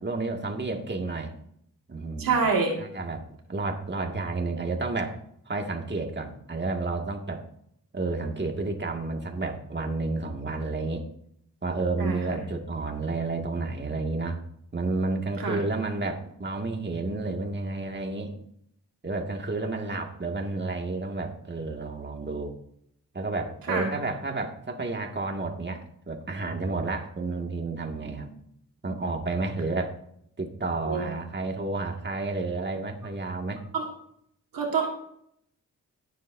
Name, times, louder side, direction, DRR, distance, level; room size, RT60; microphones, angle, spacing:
voice 1, 0.0-1.3 1.9-2.4 2.8-3.2 3.5-5.2 5.5-7.4 7.9-11.1 11.6-14.4 14.7-18.4 19.0-22.5 23.1-28.3 28.8-29.9 30.4-33.6, right 3 dB, 30° right, 2 dB, 2.1 m, -31 dB
voice 2, 2.2-2.7 12.0-12.2 15.4-15.6 23.7-23.9 30.9-31.1 33.7-33.9 34.5-34.9, right 4 dB, 75° right, 2 dB, 1.8 m, -25 dB
17.0 x 7.3 x 2.7 m, 0.70 s
supercardioid pair, 45°, 35 cm